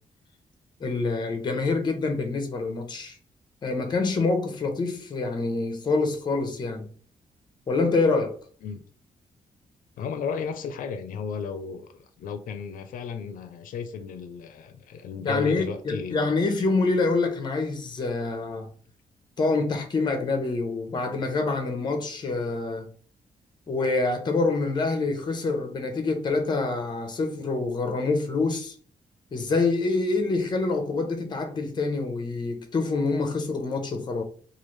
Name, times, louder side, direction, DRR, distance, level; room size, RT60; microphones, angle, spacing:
voice 1, 0.8-3.2 3.6-6.9 7.7-8.4 15.2-18.7 19.4-22.9 23.7-28.7 29.3-34.2, left 3 dB, 35° left, 0.6 m, -26 dB
voice 2, 10.0-16.3 18.4-18.5, left 5 dB, 85° left, 0.4 m, -34 dB
3.1 x 2.4 x 3.1 m
wide cardioid pair, 150°, 14 cm